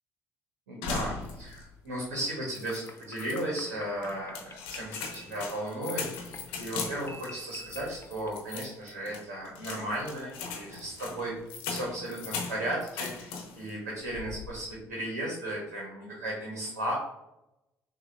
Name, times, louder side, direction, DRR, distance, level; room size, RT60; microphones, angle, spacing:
voice 1, 0.7-11.4 11.7-13.3 13.5-16.9, right 1 dB, 85° right, -4 dB, 1.3 m, -35 dB
sound 1, 0.8-1.7 2.0-2.1 2.5-3.4 4.0-13.7 14.1-14.6, left 5 dB, 75° left, 0.9 m, -39 dB
sound 2, 2.3-8.3, left 1 dB, 30° left, 0.7 m, -50 dB
6.4 x 2.8 x 2.7 m, 0.89 s
hypercardioid pair, 50°, 9 cm